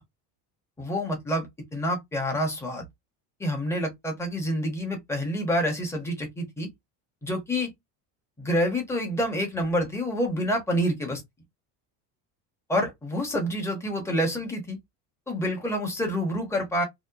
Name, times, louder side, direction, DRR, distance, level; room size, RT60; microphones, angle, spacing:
voice 1, 0.8-2.8 3.4-6.7 7.2-7.7 8.4-11.2 12.7-14.8 15.3-16.8, equal, 5° left, 0.8 m, -27 dB
2.8 x 2.1 x 2.2 m
cardioid pair, 160°, 40 cm